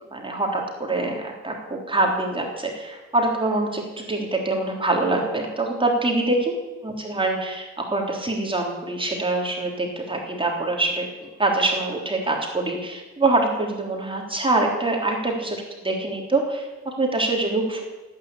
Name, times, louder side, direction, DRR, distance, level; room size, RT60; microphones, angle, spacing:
voice 1, 0.1-6.5 6.8-17.8, right 2 dB, 15° right, 0 dB, 3.5 m, -25 dB
17.5 x 9.6 x 8.6 m, 1.2 s
cardioid pair, 90°, 30 cm